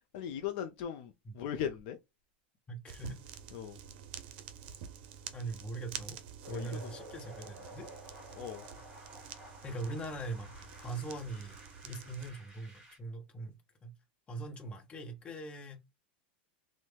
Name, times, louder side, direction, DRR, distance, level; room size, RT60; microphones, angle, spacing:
voice 1, 0.1-2.0 3.5-3.8 6.5-6.9 8.3-8.6, left 9 dB, 60° left, 0.5 m, -38 dB
voice 2, 2.7-3.2 5.3-6.2 6.5-7.9 9.6-10.5 10.8-11.6 11.8-13.9 14.3-15.8, right 2 dB, 20° left, 0.9 m, -41 dB
sound 1, 2.9-12.3, right 8 dB, 65° right, 0.5 m, -49 dB
sound 2, 6.4-13.0, right 1 dB, 10° right, 1.7 m, -52 dB
3.1 x 2.1 x 3.2 m
supercardioid pair, 120°, 6 cm